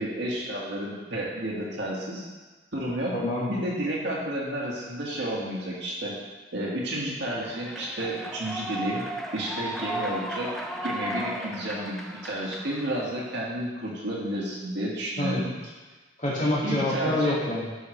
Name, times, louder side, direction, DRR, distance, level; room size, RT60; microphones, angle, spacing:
voice 1, 0.0-2.3 2.7-3.1 3.5-6.1 6.5-9.1 9.3-10.5 10.8-15.5 16.6-17.4, right 1 dB, 60° right, -5 dB, 1.9 m, -31 dB
voice 2, 3.1-3.5 15.2-15.5 16.2-17.7, left 1 dB, 40° left, -8 dB, 2.4 m, -26 dB
Human voice / Clapping / Cheering, 7.4-13.4, right 1 dB, ahead, 0.5 m, -35 dB
11.5 x 5.5 x 3.3 m, 1.3 s
head